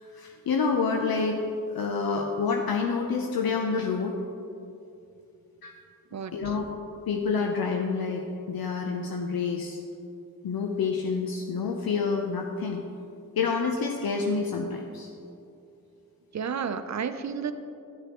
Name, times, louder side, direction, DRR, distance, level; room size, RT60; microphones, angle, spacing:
voice 1, 0.0-4.2 5.6-5.8 6.3-6.7 7.1-9.8 10.4-12.8 13.4-15.1, left 5 dB, 85° left, 1 dB, 0.7 m, -28 dB
voice 2, 16.3-17.5, right 7 dB, 50° right, 10 dB, 0.6 m, -31 dB
10.0 x 10.0 x 3.0 m, 2.7 s
cardioid pair, 55°, 35 cm